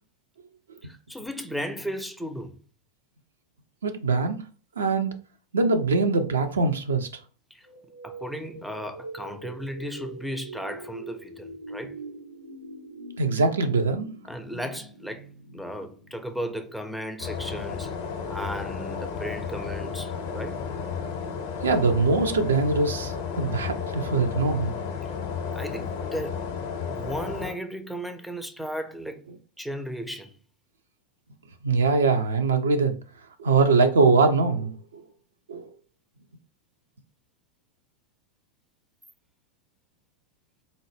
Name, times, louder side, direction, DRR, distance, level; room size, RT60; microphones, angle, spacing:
voice 1, 0.8-2.6 7.5-7.7 8.0-12.0 14.3-15.3 15.5-17.9 18.3-20.7 25.5-26.4 26.9-29.2 29.6-30.3 33.6-33.7, equal, ahead, 0.4 m, -35 dB
voice 2, 3.8-4.4 4.8-5.1 5.5-7.1 13.2-14.1 21.6-24.7 31.6-33.0 33.4-35.0 35.5-35.7, right 4 dB, 65° right, 0.4 m, -22 dB
sound 1, 7.6-16.6, right 2 dB, 90° right, 0.8 m, -43 dB
sound 2, 17.2-27.5, left 6 dB, 50° left, 0.5 m, -33 dB
3.9 x 2.0 x 3.2 m
figure-of-eight pair, 90°, 0 cm